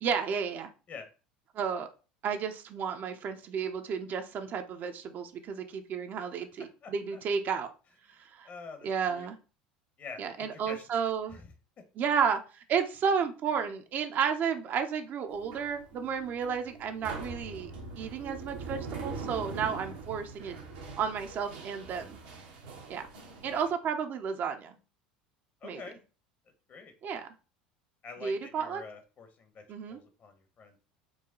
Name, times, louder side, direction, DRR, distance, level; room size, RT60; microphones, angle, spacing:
voice 1, 0.0-0.7 1.5-1.9 2.2-7.7 8.2-8.5 8.8-9.4 10.2-11.4 12.0-17.7 18.0-20.6 21.0-22.2 22.9-23.1 23.4-24.8 25.6-25.8 27.0-27.3 28.2-28.8 29.7-30.0, right 6 dB, 45° right, 6 dB, 0.6 m, -32 dB
voice 2, 6.8-7.2 8.4-9.3 10.0-10.8 11.3-11.5 23.4-23.7 25.6-26.0 26.7-26.9 28.0-30.8, left 4 dB, 40° left, 7 dB, 1.0 m, -47 dB
sound 1, 15.3-23.7, right 4 dB, 80° right, 1.1 m, -42 dB
4.7 x 2.2 x 3.7 m, 0.33 s
hypercardioid pair, 80°, 4 cm